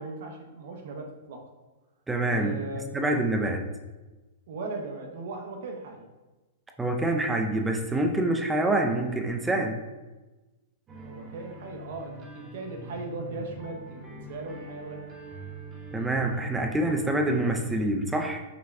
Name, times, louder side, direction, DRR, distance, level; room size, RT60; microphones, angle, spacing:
voice 1, 0.0-1.4 2.3-3.2 4.5-6.1 11.0-15.0, right 3 dB, 65° right, 3 dB, 0.8 m, -38 dB
voice 2, 2.1-2.6 2.9-3.7 6.8-9.8 15.9-18.4, right 1 dB, 10° right, 3 dB, 0.5 m, -26 dB
sound 1, 10.9-17.9, right 2 dB, 25° right, 0.9 m, -43 dB
5.9 x 2.3 x 3.2 m, 1.2 s
hypercardioid pair, 120°, 0 cm